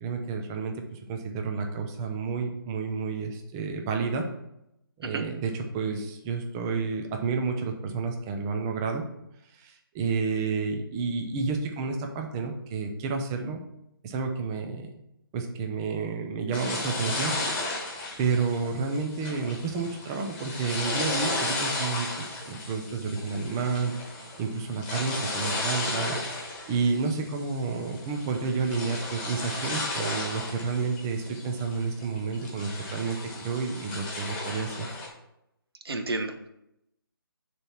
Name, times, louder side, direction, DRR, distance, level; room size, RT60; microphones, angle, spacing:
voice 1, 0.0-4.3 5.0-9.0 9.5-13.6 14.0-14.9 15.3-17.3 18.2-26.2 26.7-34.9, right 4 dB, 10° right, 4 dB, 0.3 m, -30 dB
sound 1, 16.5-35.1, left 2 dB, 15° left, 1.2 m, -34 dB
voice 2, 35.8-36.5, right 2 dB, 85° right, 7 dB, 0.9 m, -31 dB
6.7 x 3.0 x 5.6 m, 0.82 s
hypercardioid pair, 160°, 12 cm